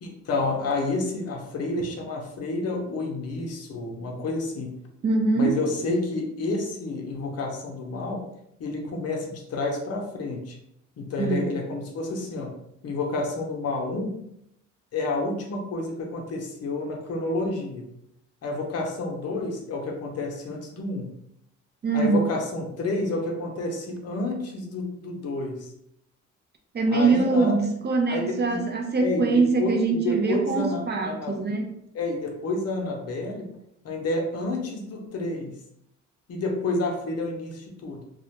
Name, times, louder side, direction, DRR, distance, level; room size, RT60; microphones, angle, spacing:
voice 1, 0.0-4.8 5.3-8.2 8.6-10.6 11.0-12.6 12.8-14.2 14.9-17.9 18.4-21.1 21.9-25.7 26.9-27.5 28.1-28.6 29.0-31.4 31.9-33.5 33.8-35.6 36.3-38.0, left 2 dB, 55° left, 2 dB, 0.6 m, -29 dB
voice 2, 5.0-5.6 11.2-11.4 21.8-22.3 26.7-31.7, right 4 dB, 35° right, 2 dB, 0.4 m, -23 dB
2.4 x 2.1 x 2.8 m, 0.78 s
cardioid pair, 90°, 30 cm